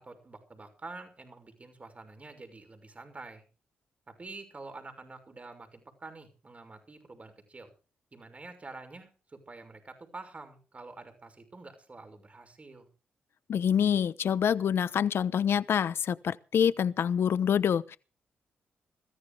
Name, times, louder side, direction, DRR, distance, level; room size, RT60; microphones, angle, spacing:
voice 1, 0.0-3.4 4.1-7.7 8.1-12.9, right 3 dB, 30° right, 6.0 m, -47 dB
voice 2, 13.5-18.0, left 8 dB, 65° left, 1.0 m, -26 dB
21.5 x 14.5 x 3.5 m
cardioid pair, 65°, 4 cm